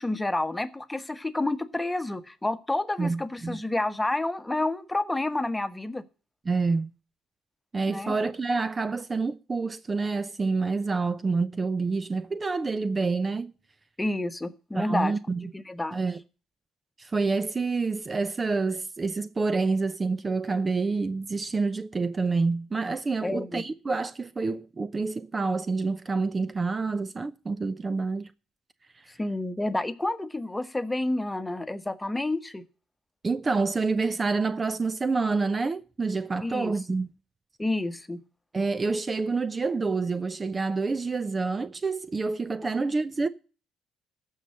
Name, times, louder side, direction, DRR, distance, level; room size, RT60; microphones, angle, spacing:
voice 1, 0.0-6.0 7.9-8.1 14.0-15.1 15.5-16.0 23.2-23.6 29.1-32.6 36.4-36.7 37.6-38.2 42.6-42.7, left 2 dB, 15° left, 1.2 m, -29 dB
voice 2, 3.0-3.6 6.5-6.9 7.7-13.5 14.7-15.5 15.9-16.2 17.0-28.3 33.2-37.1 38.5-43.3, right 4 dB, 30° right, 0.6 m, -28 dB
14.0 x 5.6 x 7.7 m
supercardioid pair, 65°, 0 cm